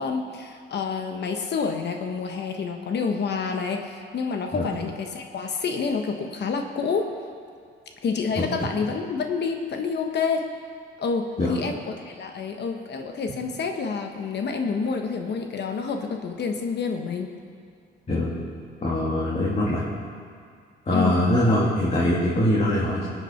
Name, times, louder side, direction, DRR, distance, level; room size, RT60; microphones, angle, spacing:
voice 1, 0.0-7.1 8.0-10.5 11.0-17.3 20.9-21.2, left 5 dB, 60° left, 4 dB, 1.1 m, -28 dB
voice 2, 18.8-19.8 20.9-23.1, left 1 dB, 35° left, -6 dB, 2.4 m, -23 dB
20.0 x 8.2 x 4.5 m, 2.2 s
cardioid pair, 90°, 20 cm